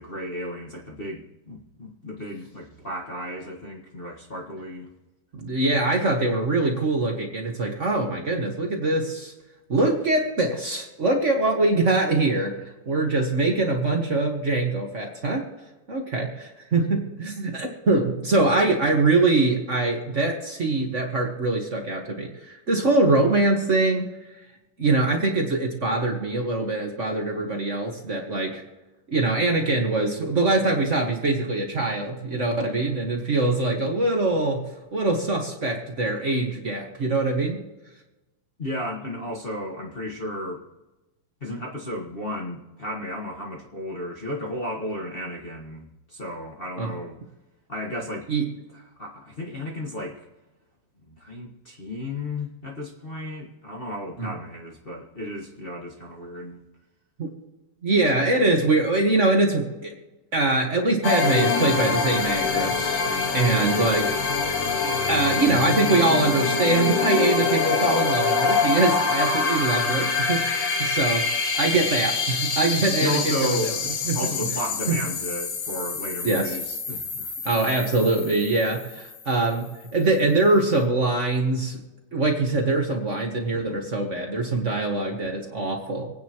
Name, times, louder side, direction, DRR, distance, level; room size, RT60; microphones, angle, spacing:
voice 1, 0.0-4.9 38.6-40.6 41.4-47.2 47.7-48.3 48.7-50.2 51.1-56.6 73.0-77.3 83.5-83.8, left 1 dB, 45° left, -2 dB, 0.7 m, -34 dB
voice 2, 5.3-9.3 9.7-15.5 15.9-24.1 24.8-28.6 29.1-34.6 34.9-37.6 46.8-46.9 48.3-48.5 54.2-54.3 57.2-57.3 57.8-59.9 60.3-64.2 65.1-70.5 70.8-73.8 74.1-74.5 74.9-75.0 76.2-76.6 77.4-81.8 82.1-86.1, right 2 dB, 55° right, 1 dB, 0.8 m, -23 dB
sound 1, 61.0-79.5, left 4 dB, 90° left, 3.3 m, -25 dB
27.0 x 9.8 x 3.0 m, 1.1 s
omnidirectional pair, 3.8 m